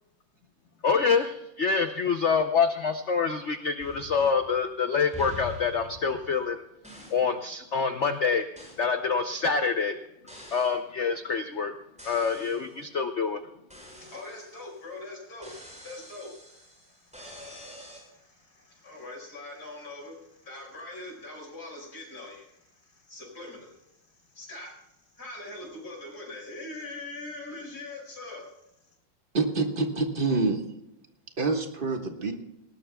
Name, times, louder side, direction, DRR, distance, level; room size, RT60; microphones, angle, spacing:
voice 1, 0.8-6.6 7.1-8.4 8.8-10.0 10.5-11.7 12.0-13.4, left 5 dB, 70° left, 7 dB, 0.6 m, -26 dB
sound 1, 3.8-4.7 5.1-6.5 6.8-7.3 8.6-8.9 10.3-10.8 12.0-12.8 13.7-14.8 15.4-18.0, left 2 dB, 5° right, 5.8 m, -46 dB
voice 2, 13.9-28.6 28.9-29.0, left 2 dB, 50° left, -1 dB, 5.9 m, -43 dB
voice 3, 29.3-30.6 31.4-32.3, right 3 dB, 30° right, 4 dB, 1.5 m, -26 dB
19.5 x 18.5 x 2.3 m, 0.89 s
omnidirectional pair, 2.2 m